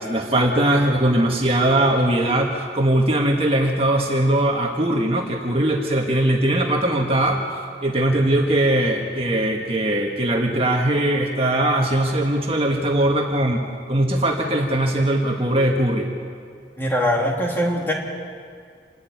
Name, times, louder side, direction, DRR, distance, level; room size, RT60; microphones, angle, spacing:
voice 1, 0.0-16.1, right 1 dB, 30° right, 1 dB, 1.6 m, -20 dB
voice 2, 16.8-17.9, equal, 10° left, -1 dB, 2.7 m, -22 dB
27.5 x 12.0 x 9.4 m, 2.2 s
head